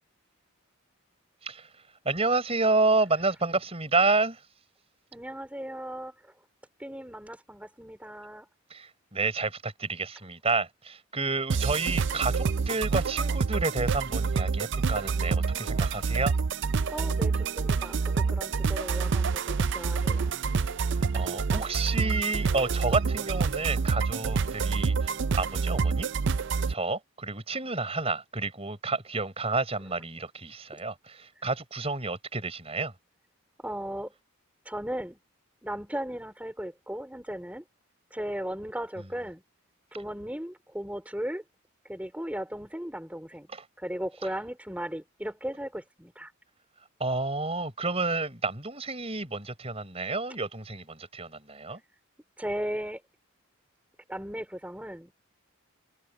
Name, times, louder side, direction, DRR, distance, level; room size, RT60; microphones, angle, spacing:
voice 1, 2.0-4.4 8.7-16.3 21.1-26.1 26.7-32.9 43.5-43.6 47.0-51.8, right 3 dB, 25° right, 5.0 m, -30 dB
voice 2, 5.1-6.3 6.8-8.5 16.9-20.3 33.6-34.1 34.7-35.2 35.6-37.6 38.1-39.4 39.9-41.4 41.9-43.5 43.8-46.3 52.4-53.0 54.1-55.1, equal, 5° right, 3.8 m, -36 dB
sound 1, 11.5-26.7, right 5 dB, 55° right, 0.5 m, -27 dB
head